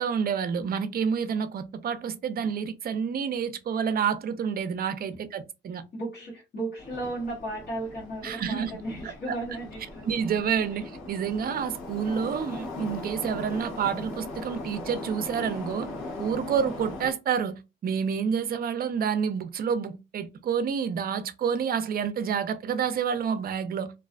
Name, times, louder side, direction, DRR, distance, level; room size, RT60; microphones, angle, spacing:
voice 1, 0.0-5.8 8.2-8.7 9.0-9.4 10.0-15.9 16.2-23.9, right 7 dB, 50° right, 0.5 m, -29 dB
voice 2, 5.9-10.0 10.7-10.8, right 2 dB, 50° left, 1.1 m, -35 dB
Subway metro underground, 6.8-17.1, left 2 dB, 90° left, 0.9 m, -39 dB
2.4 x 2.3 x 2.2 m
cardioid pair, 90°, 20 cm